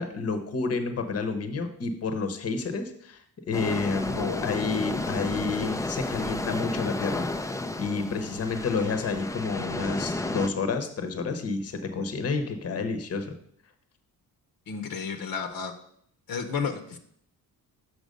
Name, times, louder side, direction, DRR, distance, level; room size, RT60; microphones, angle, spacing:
voice 1, 0.0-3.2 3.5-7.3 7.8-13.3, left 4 dB, 40° left, 7 dB, 1.0 m, -30 dB
sound 1, 3.5-10.5, left 2 dB, 10° left, 0.4 m, -32 dB
voice 2, 4.1-4.7 5.1-5.2 14.7-15.7 16.3-17.0, left 6 dB, 65° left, 7 dB, 1.0 m, -32 dB
6.4 x 6.0 x 5.3 m, 0.67 s
cardioid pair, 115°, 38 cm